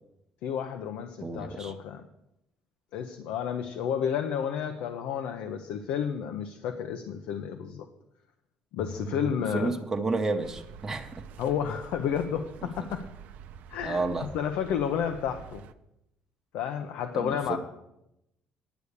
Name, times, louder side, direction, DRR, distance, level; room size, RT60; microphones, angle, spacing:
voice 1, 0.4-2.0 2.9-7.9 8.7-9.8 11.4-13.1 13.7-15.6 16.5-17.6, left 8 dB, 85° left, 7 dB, 0.8 m, -31 dB
voice 2, 1.2-1.7 9.1-9.3 9.5-11.1 12.8-12.9 13.8-14.3 17.1-17.6, right 3 dB, 15° right, 3 dB, 0.9 m, -31 dB
sound 1, 8.8-10.6, left 6 dB, 35° left, 0.6 m, -46 dB
sound 2, 10.4-15.7, right 7 dB, 75° right, 0.6 m, -47 dB
10.5 x 7.0 x 6.6 m, 0.85 s
cardioid pair, 125°, 3 cm